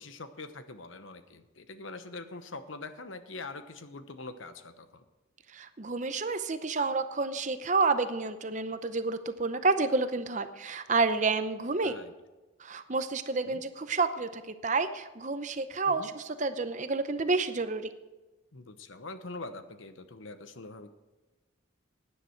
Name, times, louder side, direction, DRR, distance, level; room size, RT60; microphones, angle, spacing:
voice 1, 0.0-5.0 11.8-12.1 13.4-13.6 15.8-16.1 18.5-20.9, left 3 dB, 75° left, 10 dB, 1.0 m, -43 dB
voice 2, 5.5-12.0 12.6-17.9, right 3 dB, 35° right, 10 dB, 0.7 m, -29 dB
16.0 x 10.0 x 4.6 m, 1.1 s
head